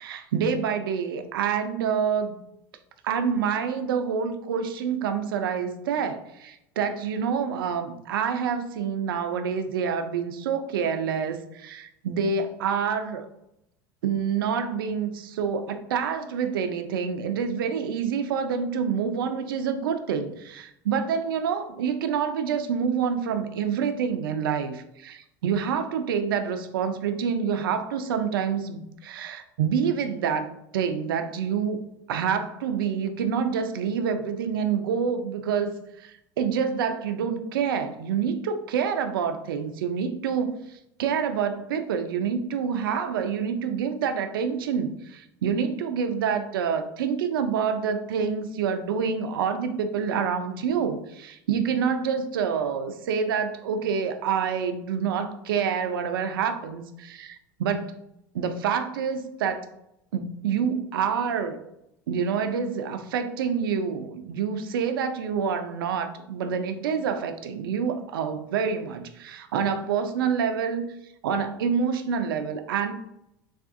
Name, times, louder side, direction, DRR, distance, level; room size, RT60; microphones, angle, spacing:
voice 1, 0.0-2.4 3.0-13.3 14.0-30.5 30.7-31.8 32.1-57.9 58.3-59.7 60.1-61.6 62.1-70.9 71.2-72.9, right 7 dB, 80° right, 8 dB, 0.4 m, -27 dB
3.5 x 2.3 x 2.5 m, 0.81 s
hypercardioid pair, 85°, 11 cm